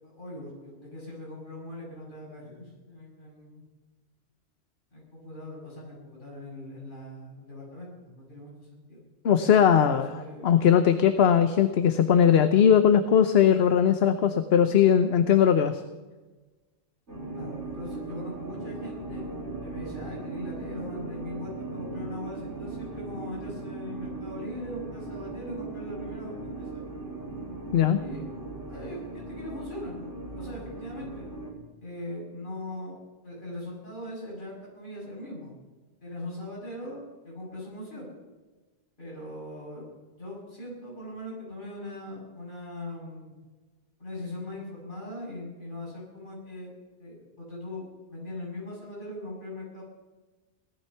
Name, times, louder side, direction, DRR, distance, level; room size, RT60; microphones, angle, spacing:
voice 1, 0.0-3.6 4.9-9.0 9.9-10.6 17.3-19.3 19.6-26.8 28.0-28.3 28.7-30.0 30.3-31.3 31.8-33.0 33.2-35.5 36.0-38.1 39.0-39.8 40.2-43.3 44.0-46.7 47.0-49.8, left 1 dB, 45° left, -4 dB, 7.7 m, -40 dB
voice 2, 9.2-15.8 27.7-28.0, left 8 dB, 60° left, 9 dB, 1.0 m, -20 dB
sound 1, 17.1-31.5, right 3 dB, 65° right, 4.3 m, -38 dB
18.0 x 13.5 x 5.8 m, 1.2 s
omnidirectional pair, 1.2 m